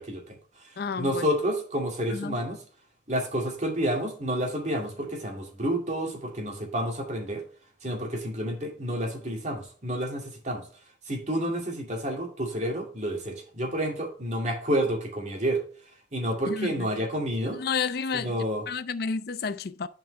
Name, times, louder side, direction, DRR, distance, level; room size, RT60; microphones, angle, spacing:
voice 1, 0.0-2.6 3.1-7.4 7.8-10.7 11.1-15.6 16.1-17.6 18.1-18.7, equal, 40° right, 2.3 m, -30 dB
voice 2, 0.8-1.3 2.1-2.4 16.5-16.9 17.5-18.4 18.7-19.9, left 5 dB, 60° left, 0.5 m, -31 dB
11.0 x 5.3 x 3.2 m
head